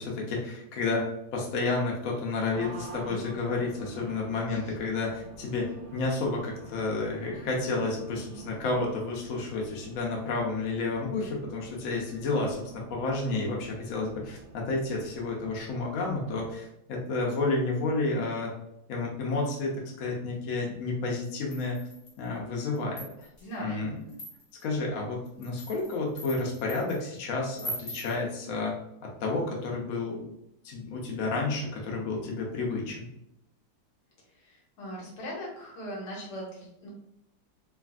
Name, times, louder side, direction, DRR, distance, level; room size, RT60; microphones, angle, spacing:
voice 1, 0.0-18.5 18.9-21.8 22.2-23.1 23.6-24.0 24.6-30.2 30.6-33.1, left 3 dB, 65° left, -1 dB, 1.0 m, -31 dB
Race car auto racing, 2.5-16.6, right 2 dB, 85° right, 1.2 m, -48 dB
sound 1, 21.5-22.2 22.7-23.4 24.1-24.6 25.2-27.0 27.6-28.2, right 1 dB, 40° left, 0.5 m, -41 dB
voice 2, 23.4-24.1 34.3-36.9, equal, 80° left, -3 dB, 1.6 m, -40 dB
3.3 x 2.5 x 2.4 m, 0.83 s
omnidirectional pair, 1.8 m